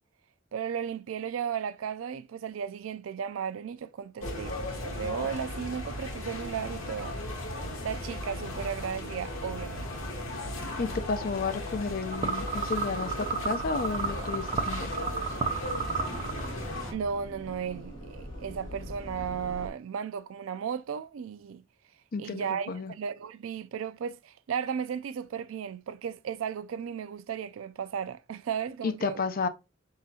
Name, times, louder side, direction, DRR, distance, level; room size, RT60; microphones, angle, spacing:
voice 1, 0.5-7.2 7.8-9.9 16.9-21.6 22.2-29.2, right 7 dB, 75° right, 0.4 m, -35 dB
sound 1, 4.2-16.9, left 1 dB, 80° left, 1.5 m, -36 dB
voice 2, 10.8-14.9 22.1-22.9 28.8-29.5, left 4 dB, 45° left, 0.5 m, -32 dB
sound 2, 12.1-16.8, right 5 dB, 30° right, 0.6 m, -33 dB
sound 3, 13.6-19.7, equal, 20° left, 2.0 m, -44 dB
4.8 x 3.8 x 2.7 m
head